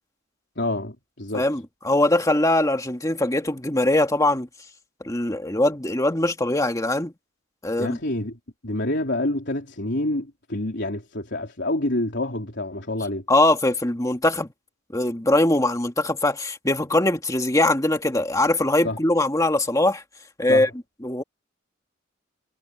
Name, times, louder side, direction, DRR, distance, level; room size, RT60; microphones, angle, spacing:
voice 1, 0.6-1.4 7.8-8.4 8.6-13.2 18.8-19.0 20.5-20.7, left 1 dB, 60° left, 4.0 m, -27 dB
voice 2, 1.3-4.5 5.0-7.1 7.6-8.0 13.3-14.5 14.9-20.0 20.4-20.7 21.0-21.2, left 1 dB, 15° left, 2.0 m, -21 dB
head